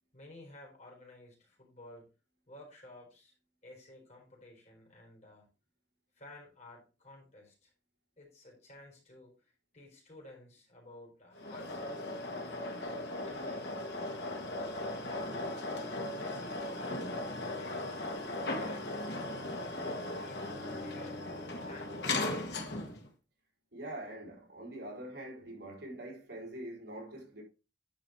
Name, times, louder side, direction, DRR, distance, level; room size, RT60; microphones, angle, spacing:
voice 1, 0.1-2.1 2.5-3.3 3.6-5.5 6.2-7.7 8.2-12.0 13.1-15.7 16.1-19.5 20.2-21.2 21.6-22.4, left 1 dB, 40° left, 4.3 m, -54 dB
sound 1, 11.4-23.1, left 2 dB, 70° left, 1.9 m, -37 dB
voice 2, 23.7-27.4, right 1 dB, 70° right, 4.8 m, -44 dB
11.0 x 5.2 x 4.4 m
head